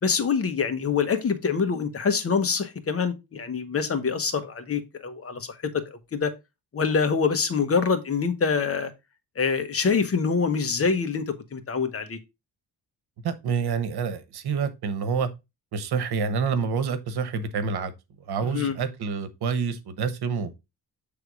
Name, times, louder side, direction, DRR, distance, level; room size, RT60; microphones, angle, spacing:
voice 1, 0.0-6.3 6.7-8.9 9.4-12.2 18.5-18.8, left 5 dB, 35° left, 1.0 m, -25 dB
voice 2, 13.2-15.3 15.7-17.9 18.2-20.5, right 5 dB, 75° right, 1.2 m, -27 dB
8.0 x 3.5 x 4.7 m
cardioid pair, 140°, 39 cm